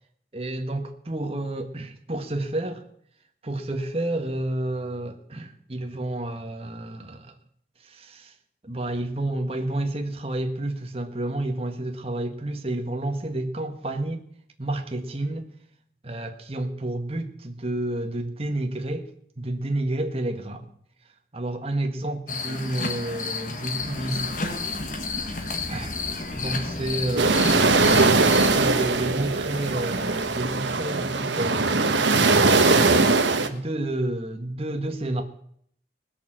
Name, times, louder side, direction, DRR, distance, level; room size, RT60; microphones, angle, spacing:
voice 1, 0.3-2.8 3.4-7.3 7.8-8.3 8.6-14.2 14.6-15.5 16.0-19.1 19.4-20.7 21.3-24.6 25.5-25.9 26.3-32.0 32.5-35.2, right 1 dB, 30° right, 1.4 m, -30 dB
sound 1, 22.3-28.7, left 4 dB, 45° left, 1.5 m, -32 dB
Wind, 23.8-30.7, left 1 dB, 5° left, 3.4 m, -40 dB
sound 2, 27.2-33.5, right 3 dB, 85° right, 1.3 m, -20 dB
19.5 x 6.7 x 7.6 m
head